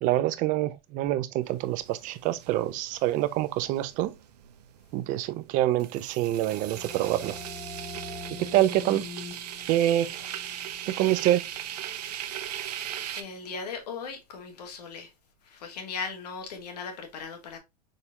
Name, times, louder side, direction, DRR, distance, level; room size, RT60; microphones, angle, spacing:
voice 1, 0.0-4.2 4.9-7.4 8.4-9.0 9.7-10.3 10.9-11.4, right 14 dB, 40° right, 0.5 m, -26 dB
sound 1, 1.4-13.2, right 10 dB, 80° right, 0.7 m, -39 dB
sound 2, 6.3-11.8, left 3 dB, 10° left, 0.8 m, -44 dB
voice 2, 12.7-15.1 15.4-17.6, left 5 dB, 75° left, 1.3 m, -38 dB
4.2 x 4.0 x 2.4 m
hypercardioid pair, 115°, 20 cm